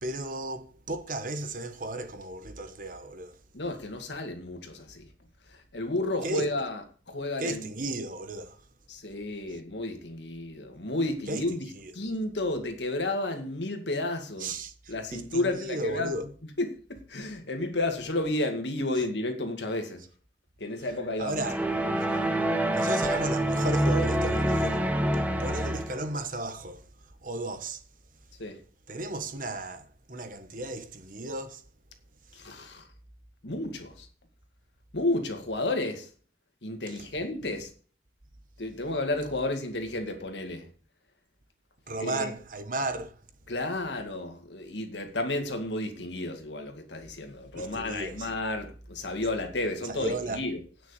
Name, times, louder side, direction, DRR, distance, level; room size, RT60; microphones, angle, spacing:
voice 1, 0.0-3.3 6.2-6.5 7.4-8.6 11.3-11.5 11.8-11.9 14.4-16.3 21.2-21.6 22.7-24.8 25.1-26.8 27.2-27.8 28.9-31.6 41.9-43.1 47.5-48.3 49.9-50.4, right 2 dB, 50° right, 1.2 m, -34 dB
voice 2, 3.5-5.1 5.7-7.7 8.9-14.5 14.9-16.2 16.6-20.0 20.6-22.0 28.4-28.6 32.3-32.8 33.4-34.1 34.9-36.1 36.6-37.7 38.6-40.7 42.0-42.3 43.5-50.6, left 2 dB, 80° left, 2.1 m, -32 dB
sound 1, 21.4-26.1, right 1 dB, 10° right, 1.1 m, -26 dB
9.6 x 6.2 x 8.2 m
head